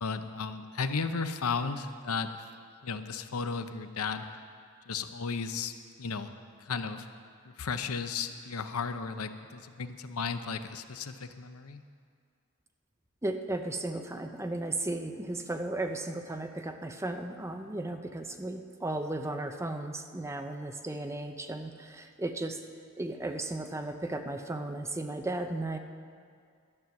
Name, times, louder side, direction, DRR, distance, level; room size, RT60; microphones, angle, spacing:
voice 1, 0.0-2.3 2.8-4.3 4.9-5.7 6.0-6.3 6.6-7.1 7.4-11.8, left 5 dB, 80° left, 9 dB, 0.7 m, -34 dB
voice 2, 13.2-22.6 23.0-25.8, right 2 dB, 15° right, 5 dB, 0.6 m, -35 dB
12.0 x 9.3 x 7.1 m, 2.2 s
head